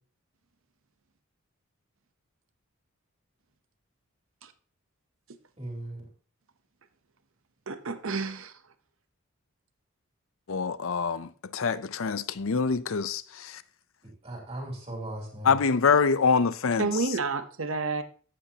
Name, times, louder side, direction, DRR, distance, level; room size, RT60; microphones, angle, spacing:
voice 1, 5.6-6.1 14.0-15.6, right 1 dB, 25° right, 3.0 m, -38 dB
voice 2, 7.7-8.5 16.8-18.0, right 4 dB, 65° right, 0.8 m, -30 dB
voice 3, 10.5-13.6 15.4-17.1, left 5 dB, 65° left, 0.6 m, -25 dB
14.0 x 8.5 x 2.9 m
head